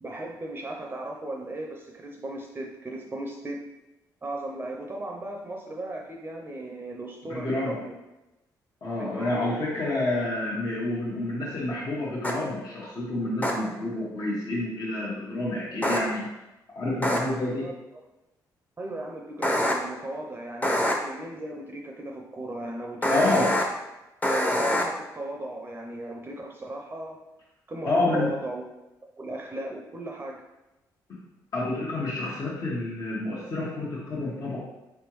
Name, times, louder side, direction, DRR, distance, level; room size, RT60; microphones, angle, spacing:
voice 1, 0.0-3.6 4.2-7.9 9.0-9.5 17.2-18.0 18.8-23.5 24.7-27.2 27.7-28.6 29.2-30.4, right 1 dB, 25° right, 0 dB, 0.6 m, -37 dB
voice 2, 7.3-7.8 8.8-16.3 16.7-17.6 23.1-23.5 27.9-28.3 31.1-31.2 31.5-34.6, left 2 dB, 55° left, -7 dB, 1.2 m, -28 dB
sound 1, 12.2-12.3 13.4-13.5 15.8-16.0 17.0-17.2 19.4-19.7 20.6-20.9 23.0-23.6 24.2-24.8, equal, 20° left, 0.8 m, -24 dB
4.7 x 3.4 x 3.1 m, 0.99 s
cardioid pair, 75°, 8 cm